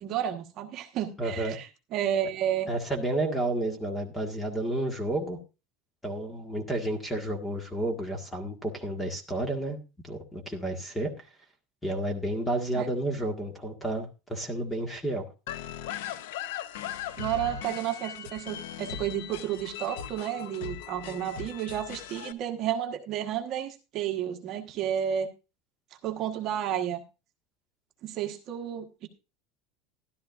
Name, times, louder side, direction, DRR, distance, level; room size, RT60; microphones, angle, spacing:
voice 1, 0.0-1.7 1.9-2.7 12.7-12.9 17.2-25.3 26.0-27.0 28.0-29.1, right 10 dB, 40° right, 3 dB, 1.3 m, -31 dB
voice 2, 1.2-1.6 2.7-5.4 6.0-9.8 10.0-11.3 11.8-15.3, right 1 dB, 10° left, 5 dB, 1.7 m, -31 dB
sound 1, 15.5-22.3, left 9 dB, 85° left, 0.7 m, -39 dB
13.5 x 12.0 x 2.5 m, 0.29 s
cardioid pair, 165°, 0 cm